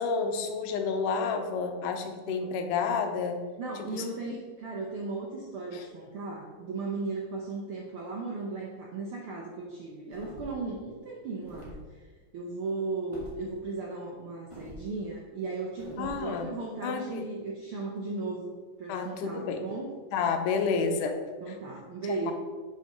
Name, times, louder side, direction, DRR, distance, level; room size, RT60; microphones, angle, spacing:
voice 1, 0.0-3.4 3.9-4.1 5.7-5.9 16.0-16.5 16.8-17.3 18.9-19.6 20.1-21.1 21.5-21.6 22.1-22.3, left 5 dB, 90° left, 6 dB, 2.3 m, -30 dB
voice 2, 3.6-11.8 12.3-19.9 21.4-22.3, right 3 dB, 75° right, -2 dB, 1.2 m, -36 dB
sound 1, 10.1-10.7 11.4-11.8 13.1-13.4 14.5-14.8 15.8-16.2, right 1 dB, 25° right, 0.6 m, -45 dB
6.2 x 5.6 x 5.2 m, 1.4 s
omnidirectional pair, 3.6 m